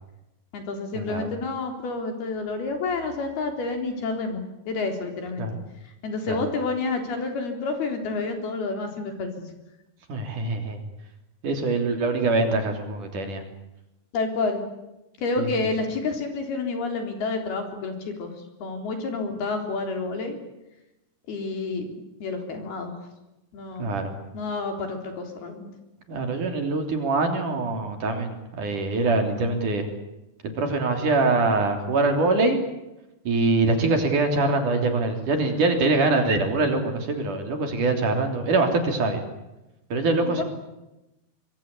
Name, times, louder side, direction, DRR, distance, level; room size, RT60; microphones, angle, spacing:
voice 1, 0.5-5.5 6.0-9.4 14.1-14.6 15.2-18.3 18.6-20.4 21.3-21.9 22.2-22.9 23.5-23.9 24.3-25.7 40.2-40.4, left 3 dB, 70° left, 5 dB, 5.8 m, -29 dB
voice 2, 10.1-10.8 11.4-13.4 15.4-15.5 23.8-24.1 26.1-29.9 30.6-32.6 33.2-39.2 39.9-40.4, right 3 dB, 55° right, 5 dB, 4.6 m, -23 dB
26.0 x 22.0 x 8.5 m, 0.94 s
omnidirectional pair, 4.6 m